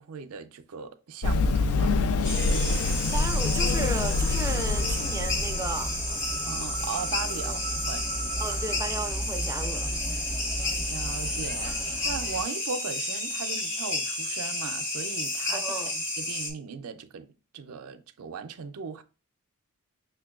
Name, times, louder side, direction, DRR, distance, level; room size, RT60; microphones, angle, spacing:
voice 1, 0.0-2.0 6.5-8.1 9.8-10.1 10.6-17.3 17.5-19.0, right 6 dB, 80° right, 0.4 m, -38 dB
Run, 1.2-6.0, left 3 dB, 70° left, 0.3 m, -26 dB
sound 1, 2.2-16.5, left 1 dB, 35° left, 1.0 m, -31 dB
voice 2, 3.1-6.3 7.3-7.6 8.4-9.9 15.5-15.9, right 3 dB, 15° right, 0.4 m, -35 dB
sound 2, 4.5-12.4, right 1 dB, 15° left, 0.8 m, -36 dB
5.7 x 2.2 x 2.3 m
head